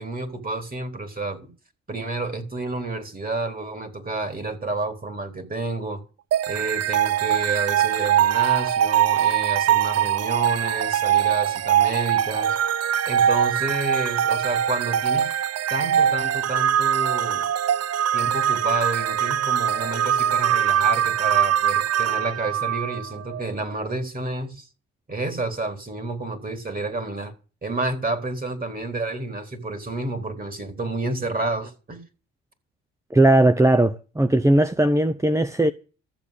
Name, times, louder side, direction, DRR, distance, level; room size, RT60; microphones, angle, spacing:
voice 1, 0.0-1.5 1.9-6.0 6.5-12.6 13.1-15.3 15.7-17.4 18.1-24.7 25.1-27.3 27.6-32.0, right 2 dB, 30° right, 4.0 m, -30 dB
sound 1, 6.3-23.5, right 10 dB, 55° right, 0.6 m, -22 dB
voice 2, 33.1-35.7, right 1 dB, 10° right, 0.8 m, -18 dB
14.0 x 7.6 x 8.4 m
cardioid pair, 90°, 30 cm